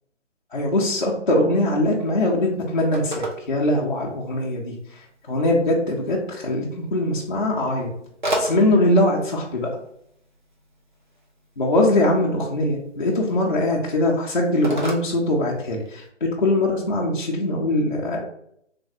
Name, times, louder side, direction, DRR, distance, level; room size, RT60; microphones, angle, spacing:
voice 1, 0.5-4.7 5.3-7.9 8.4-9.7 11.6-18.2, left 1 dB, 45° left, -4 dB, 0.4 m, -22 dB
Telephone, 1.6-16.1, right 1 dB, 40° right, 0.4 m, -36 dB
3.2 x 2.1 x 2.6 m, 0.72 s
figure-of-eight pair, 165°, 37 cm